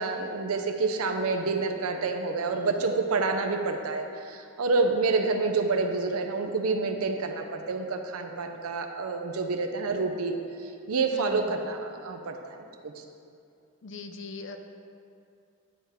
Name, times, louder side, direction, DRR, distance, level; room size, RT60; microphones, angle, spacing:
voice 1, 0.0-13.0, right 3 dB, 80° right, 5 dB, 0.6 m, -28 dB
voice 2, 11.1-11.5 13.8-14.6, left 3 dB, 55° left, 6 dB, 0.5 m, -40 dB
9.4 x 3.6 x 5.7 m, 2.5 s
head